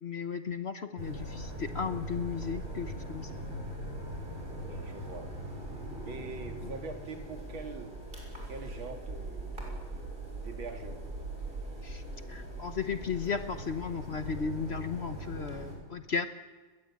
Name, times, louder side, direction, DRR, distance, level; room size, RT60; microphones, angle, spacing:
voice 1, 0.0-3.4 11.8-12.0 12.3-16.3, left 6 dB, 45° left, 9 dB, 0.9 m, -35 dB
sound 1, 1.0-15.7, right 1 dB, 25° right, 7.0 m, -40 dB
voice 2, 4.7-5.3 6.0-8.0 8.5-10.1 10.4-11.1, right 3 dB, 70° right, 4 dB, 3.1 m, -43 dB
30.0 x 21.5 x 8.6 m, 1.4 s
omnidirectional pair, 2.3 m